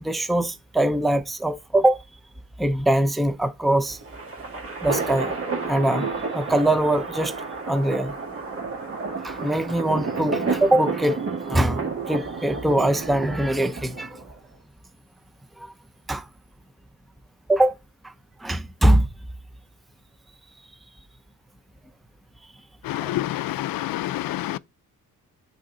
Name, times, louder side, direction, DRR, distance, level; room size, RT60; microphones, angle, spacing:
voice 1, 0.0-2.0 2.6-4.0 4.8-5.3 5.7-6.1 6.3-7.4 7.7-8.1 9.2-11.2 11.5-14.2 16.1-16.2 17.5-17.7 18.0-18.1 18.4-19.1 23.1-23.2, right 1 dB, ahead, 0.6 m, -22 dB
sound 1, 3.9-14.3, right 4 dB, 40° right, 1.8 m, -31 dB
voice 2, 22.9-24.6, left 15 dB, 80° left, 0.5 m, -28 dB
7.9 x 4.3 x 3.8 m
cardioid pair, 130°, 35 cm